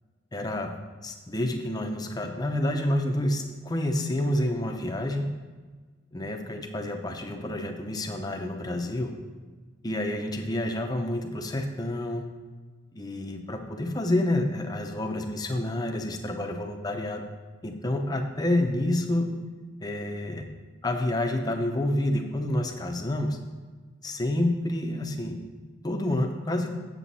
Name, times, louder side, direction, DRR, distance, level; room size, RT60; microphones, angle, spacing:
voice 1, 0.3-0.7 1.0-5.3 6.1-9.1 9.8-12.2 12.9-17.2 17.6-19.3 19.8-20.4 20.8-23.4 24.0-25.4 25.8-26.8, left 1 dB, 20° left, 3 dB, 0.7 m, -28 dB
7.6 x 7.2 x 4.1 m, 1.4 s
head